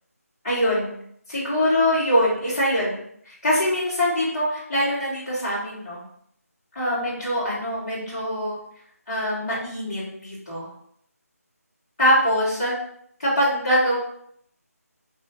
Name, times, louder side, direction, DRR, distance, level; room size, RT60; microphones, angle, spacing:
voice 1, 0.4-0.9 1.3-3.0 3.3-6.0 6.7-8.6 9.1-10.7 12.0-12.7 13.2-13.9, equal, 25° left, -11 dB, 1.6 m, -23 dB
3.4 x 3.0 x 3.9 m, 0.68 s
figure-of-eight pair, 160°, 9 cm